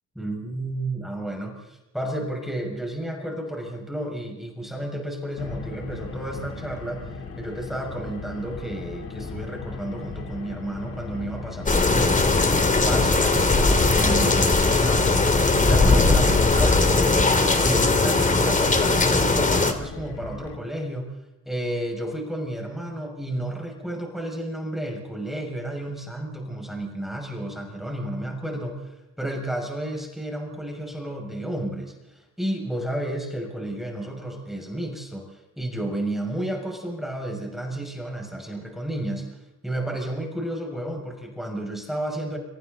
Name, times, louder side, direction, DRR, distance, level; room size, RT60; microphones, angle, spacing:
voice 1, 0.1-7.1 7.4-15.2 15.6-16.9 17.5-21.1 21.4-39.4 39.6-42.4, right 1 dB, ahead, 1 dB, 6.5 m, -32 dB
Car, 5.4-20.6, left 4 dB, 50° left, 3.8 m, -37 dB
sound 1, 11.7-19.7, left 3 dB, 25° left, 2.9 m, -19 dB
30.0 x 25.0 x 4.1 m, 0.96 s
cardioid pair, 90°, 30 cm